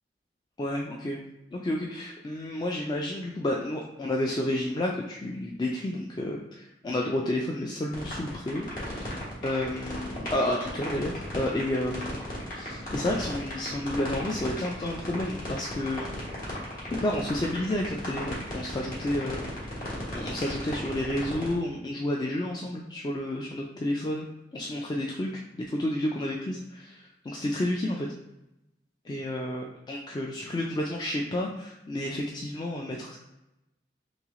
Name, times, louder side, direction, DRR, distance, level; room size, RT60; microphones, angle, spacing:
voice 1, 0.6-1.2 1.5-9.2 9.4-12.2 12.5-16.1 17.0-19.5 20.1-24.3 24.5-28.1 29.1-33.2, left 1 dB, 25° left, -1 dB, 0.3 m, -31 dB
sound 1, 7.9-21.5, left 1 dB, 55° left, 1.5 m, -36 dB
3.2 x 3.1 x 3.6 m, 0.92 s
head